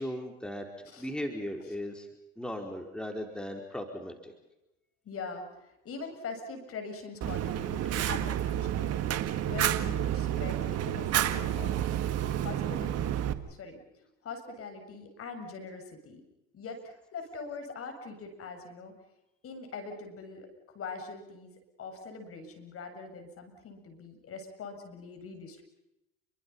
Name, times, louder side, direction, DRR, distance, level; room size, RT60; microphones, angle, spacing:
voice 1, 0.0-0.7 1.0-2.1 2.4-4.3, left 1 dB, 5° left, 3 dB, 4.7 m, -37 dB
voice 2, 5.1-9.0 9.5-11.8 12.3-16.2 16.5-18.9 19.4-20.5 20.7-25.6, left 4 dB, 50° left, 6 dB, 7.2 m, -43 dB
Fire, 7.2-13.3, right 11 dB, 55° right, 1.9 m, -30 dB
30.0 x 23.5 x 5.7 m, 0.91 s
hypercardioid pair, 75°, 30 cm